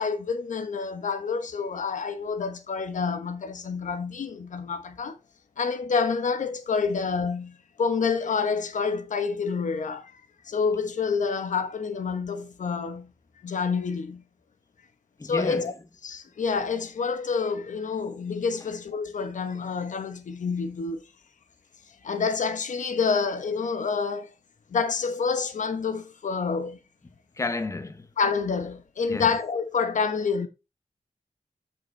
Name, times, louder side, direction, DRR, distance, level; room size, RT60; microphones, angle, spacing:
voice 1, 0.0-5.1 5.6-10.1 10.4-13.1 13.4-14.2 15.2-15.7 16.0-21.0 22.0-24.3 24.7-26.8 28.2-30.5, left 5 dB, 85° left, 1.1 m, -28 dB
voice 2, 15.2-15.7 27.0-28.1 29.1-29.3, left 3 dB, 25° left, 0.8 m, -32 dB
8.0 x 6.9 x 3.2 m
wide cardioid pair, 175°, 13 cm